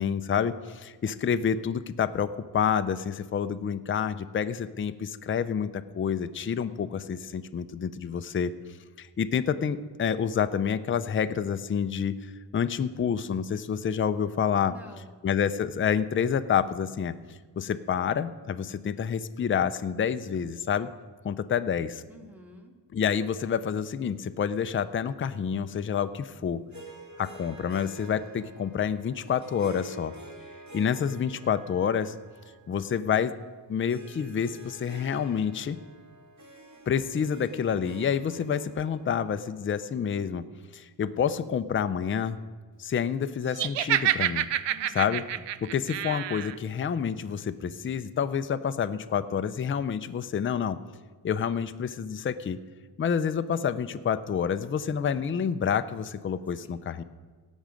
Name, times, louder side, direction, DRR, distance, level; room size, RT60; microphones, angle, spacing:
voice 1, 0.0-8.5 9.0-14.7 15.2-17.1 17.6-20.9 21.2-22.0 22.9-26.6 27.2-30.1 30.7-32.1 32.7-33.3 33.7-35.8 36.9-40.4 40.7-42.4 42.8-44.5 44.9-45.2 45.6-50.8 51.2-52.6 53.0-57.0, left 7 dB, 30° left, 11 dB, 0.4 m, -28 dB
voice 2, 14.6-15.2 22.1-22.7 44.7-45.4, equal, 5° right, 3 dB, 1.6 m, -50 dB
Harp, 26.7-40.3, right 1 dB, 40° right, 2.2 m, -48 dB
Laughter, 43.5-46.6, right 11 dB, 70° right, 0.6 m, -28 dB
18.0 x 6.2 x 5.1 m, 1.4 s
cardioid pair, 95°, 45 cm